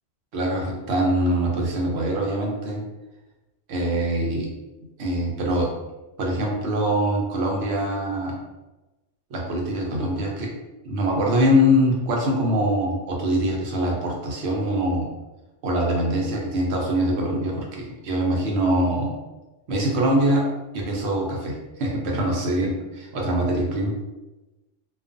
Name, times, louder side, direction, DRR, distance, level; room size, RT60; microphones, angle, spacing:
voice 1, 0.3-2.8 3.7-4.5 5.0-5.7 6.2-8.3 9.3-10.5 10.8-15.1 15.6-19.1 19.7-20.4 20.7-23.9, equal, 65° right, -1 dB, 0.8 m, -23 dB
2.4 x 2.3 x 2.5 m, 1.1 s
omnidirectional pair, 1.3 m